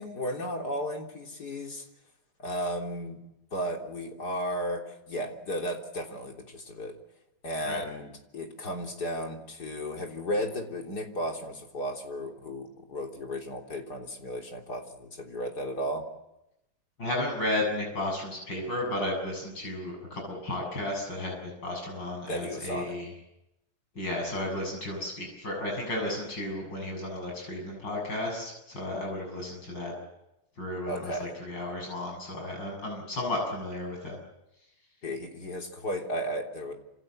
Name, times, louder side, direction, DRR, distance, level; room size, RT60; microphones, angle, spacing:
voice 1, 0.0-1.9 2.4-3.2 3.5-6.9 7.4-16.1 22.3-23.0 30.9-31.3 35.0-36.7, equal, 60° left, 2 dB, 4.1 m, -34 dB
voice 2, 17.0-23.1 23.9-29.9 30.6-34.2, left 1 dB, 80° left, 1 dB, 8.2 m, -33 dB
27.5 x 27.5 x 7.8 m, 0.90 s
omnidirectional pair, 2.0 m